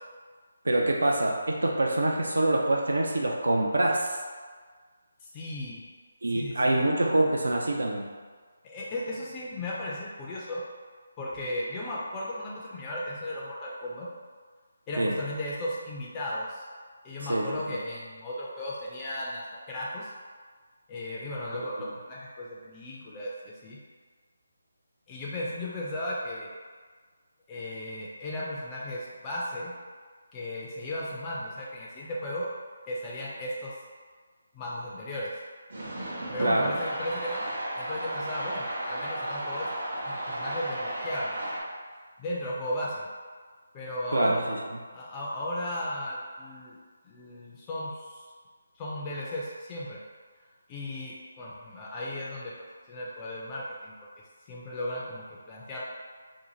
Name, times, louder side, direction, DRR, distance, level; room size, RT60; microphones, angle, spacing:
voice 1, 0.6-4.2 6.2-8.1 15.0-15.2 17.3-17.8 36.4-36.7 44.1-44.6, right 1 dB, 75° right, 0 dB, 0.3 m, -25 dB
voice 2, 5.2-5.8 6.3-6.8 8.6-10.6 11.2-14.1 14.9-16.6 17.0-20.1 20.9-23.8 25.1-26.5 27.5-29.7 30.3-32.5 32.9-33.7 34.5-35.4 36.3-37.4 37.8-39.7 40.1-41.4 42.2-43.1 43.7-44.4 44.9-46.8 47.1-48.2 48.8-50.0 50.7-52.5 52.9-53.9 54.5-55.8, left 1 dB, 20° left, -5 dB, 0.3 m, -35 dB
sound 1, 35.7-41.6, right 1 dB, 55° right, 0.7 m, -34 dB
2.6 x 2.4 x 2.8 m, 1.5 s
figure-of-eight pair, 150°, 0 cm